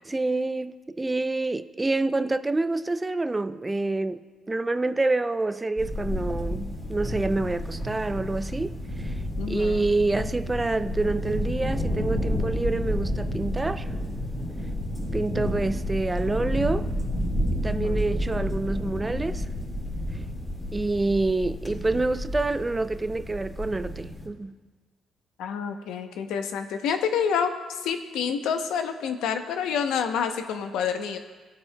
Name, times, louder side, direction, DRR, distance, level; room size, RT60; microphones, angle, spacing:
voice 1, 0.1-4.2 4.5-9.2 9.5-13.9 15.0-16.9 17.6-19.5 20.7-24.5, right 2 dB, 20° right, 0.4 m, -27 dB
sound 1, 5.8-24.3, equal, 20° left, 3.0 m, -30 dB
voice 2, 9.4-9.9 17.7-18.0 25.4-31.2, left 7 dB, 85° left, 0.7 m, -28 dB
19.0 x 8.5 x 2.2 m
cardioid pair, 90°, 0 cm